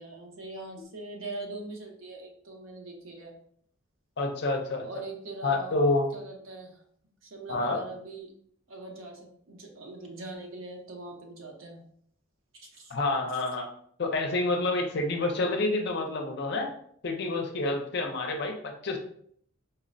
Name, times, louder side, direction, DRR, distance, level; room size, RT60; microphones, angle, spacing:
voice 1, 0.0-3.3 4.8-5.8 6.1-6.8 7.2-8.3 8.7-11.8 12.5-12.9, right 2 dB, 65° right, 1 dB, 0.7 m, -42 dB
voice 2, 4.2-4.8 5.4-6.1 7.5-7.8 12.9-13.7 14.0-16.7 17.0-19.0, left 2 dB, 50° left, 3 dB, 0.5 m, -28 dB
4.3 x 2.0 x 2.5 m, 0.64 s
head